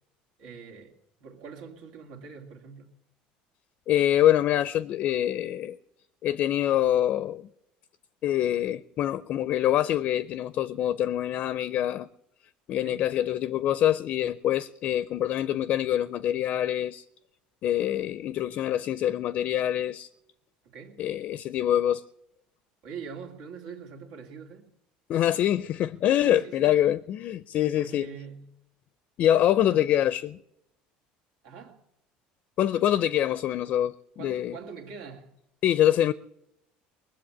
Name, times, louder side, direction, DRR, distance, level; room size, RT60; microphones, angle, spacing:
voice 1, 0.4-0.9 1.2-2.9 12.8-13.1 20.6-21.0 22.8-24.7 26.2-26.8 27.8-28.5 29.6-29.9 31.4-31.8 34.2-35.3, right 6 dB, 85° right, 2.6 m, -43 dB
voice 2, 3.9-5.8 6.2-7.5 8.2-12.1 12.7-17.0 17.6-20.1 21.0-22.0 25.1-28.1 29.2-30.4 32.6-34.5 35.6-36.1, left 11 dB, 50° left, 0.5 m, -25 dB
20.5 x 7.7 x 8.7 m
cardioid pair, 125°, 3 cm